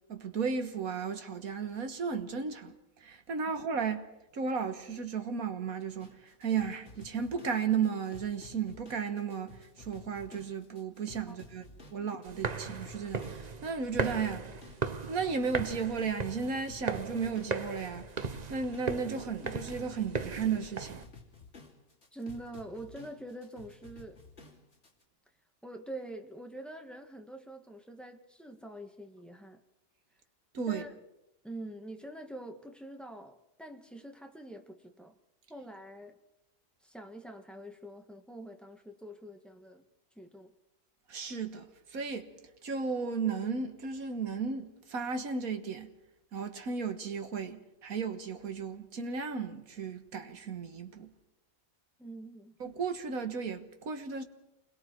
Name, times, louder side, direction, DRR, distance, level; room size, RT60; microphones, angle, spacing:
voice 1, 0.1-4.0 4.3-11.6 11.9-14.5 15.1-18.1 18.5-21.0 30.5-30.8 41.1-42.3 42.6-45.9 46.3-51.1 52.6-54.2, right 5 dB, 80° right, 2.0 m, -34 dB
sound 1, 6.0-25.0, left 4 dB, 50° left, 3.4 m, -53 dB
sound 2, 12.3-21.0, right 4 dB, 35° right, 0.9 m, -37 dB
voice 2, 22.1-24.2 25.6-29.6 30.7-30.9 31.4-35.1 35.5-36.2 36.8-39.8 40.1-40.5 52.0-52.6, right 1 dB, ahead, 1.6 m, -45 dB
28.0 x 21.5 x 4.6 m
omnidirectional pair, 1.5 m